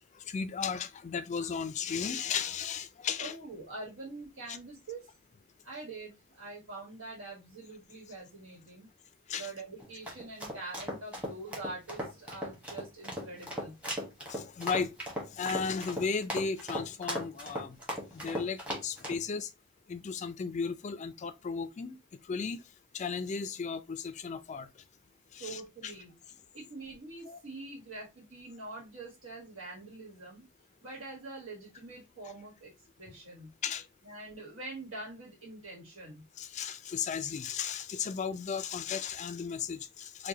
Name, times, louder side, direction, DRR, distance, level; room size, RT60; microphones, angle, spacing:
voice 1, 0.1-3.3 4.5-4.6 9.3-9.5 14.3-14.9 15.3-17.8 18.1-19.5 19.9-22.0 22.3-22.6 22.9-24.7 25.3-25.9 27.3-27.4 33.6-33.8 36.4-40.3, left 6 dB, 35° left, 0.3 m, -35 dB
voice 2, 3.2-5.1 5.6-8.9 9.3-13.8 25.4-26.2 26.5-30.4 30.8-32.7 33.0-33.5 34.0-36.2, right 2 dB, 80° right, 1.3 m, -45 dB
sound 1, 9.8-19.2, equal, 5° right, 1.0 m, -38 dB
4.6 x 2.1 x 2.7 m
head